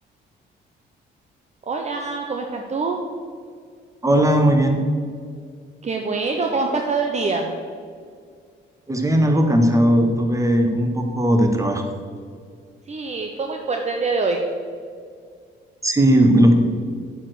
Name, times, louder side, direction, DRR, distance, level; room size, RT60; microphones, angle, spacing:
voice 1, 1.7-3.0 5.8-7.5 12.9-14.4, right 4 dB, 35° right, 2 dB, 0.8 m, -24 dB
voice 2, 4.0-4.8 8.9-11.8 15.8-16.5, right 1 dB, 15° right, 4 dB, 1.2 m, -17 dB
8.5 x 5.0 x 6.4 m, 2.1 s
cardioid pair, 90°, 20 cm